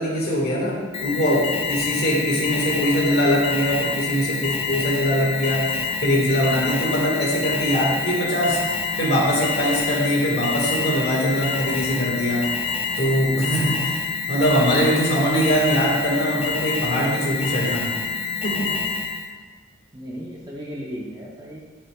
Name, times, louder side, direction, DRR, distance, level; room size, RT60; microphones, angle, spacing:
voice 1, 0.0-8.6 9.0-12.4 13.0-17.9 18.4-18.7, equal, 50° left, -3 dB, 1.7 m, -22 dB
Alarm, 0.9-19.3, left 5 dB, 25° left, 0.4 m, -27 dB
voice 2, 19.9-21.6, equal, 20° right, -3 dB, 0.7 m, -36 dB
11.0 x 5.5 x 2.3 m, 1.5 s
head